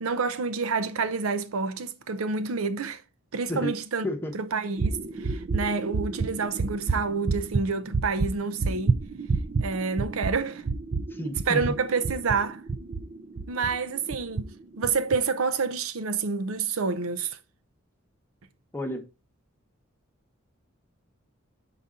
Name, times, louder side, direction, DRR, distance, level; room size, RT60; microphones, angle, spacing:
voice 1, 0.0-3.0 3.3-4.1 4.3-9.0 9.6-10.6 11.5-12.6 13.5-17.4, right 4 dB, 85° right, 0.7 m, -28 dB
sound 1, 4.8-13.8 14.1-14.4 14.8-15.2, right 4 dB, 40° right, 0.5 m, -29 dB
voice 2, 11.1-11.6 18.7-19.1, left 1 dB, 10° left, 0.9 m, -31 dB
6.7 x 4.1 x 3.7 m
head